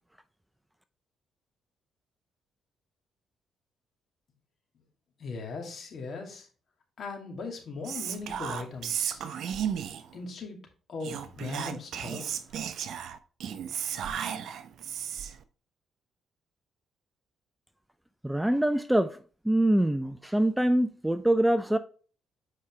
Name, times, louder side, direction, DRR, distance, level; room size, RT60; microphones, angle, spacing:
voice 1, 5.2-6.5 7.0-9.2 10.1-10.6 10.9-12.6, left 4 dB, 55° left, 2.5 m, -39 dB
Whispering, 7.8-10.2 11.0-15.4, right 8 dB, 70° right, 0.7 m, -34 dB
voice 2, 18.2-19.1 19.5-21.8, right 1 dB, 5° right, 0.5 m, -24 dB
8.4 x 5.0 x 3.3 m
cardioid pair, 90°, 0 cm